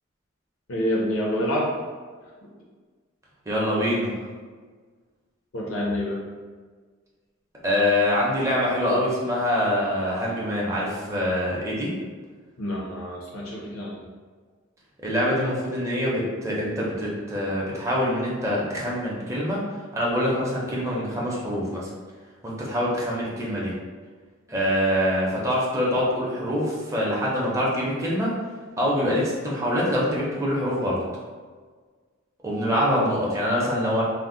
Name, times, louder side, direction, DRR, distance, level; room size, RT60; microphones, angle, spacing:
voice 1, 0.7-1.7 2.2-2.3 5.5-6.2 12.6-14.0, left 1 dB, 85° left, -4 dB, 0.6 m, -27 dB
voice 2, 3.5-4.2 7.6-11.9 15.0-19.6 19.9-21.9 22.4-23.7 24.5-28.3 28.8-31.0 32.4-34.0, equal, 15° right, -5 dB, 0.5 m, -25 dB
2.5 x 2.0 x 3.6 m, 1.5 s
head